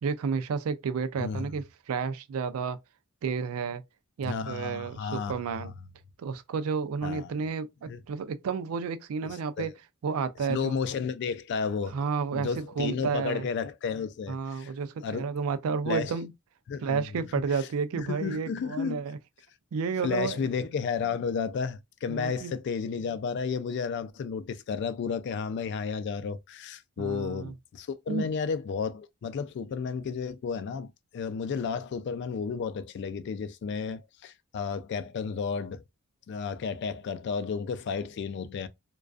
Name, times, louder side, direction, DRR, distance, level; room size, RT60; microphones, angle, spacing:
voice 1, 0.0-2.8 3.2-3.8 4.2-5.7 6.2-9.7 10.0-10.7 11.9-13.5 14.3-16.3 16.8-19.2 19.7-20.5 22.1-22.6 27.0-27.5 28.1-28.3, right 5 dB, 85° right, 0.4 m, -31 dB
voice 2, 4.2-5.7 7.0-7.3 7.9-8.0 9.6-9.7 10.5-12.0 12.3-14.7 15.0-15.3 15.9-16.1 16.7-17.0 18.0-19.0 20.0-35.8 36.3-38.7, left 5 dB, 55° left, 0.3 m, -32 dB
2.3 x 2.3 x 2.3 m
head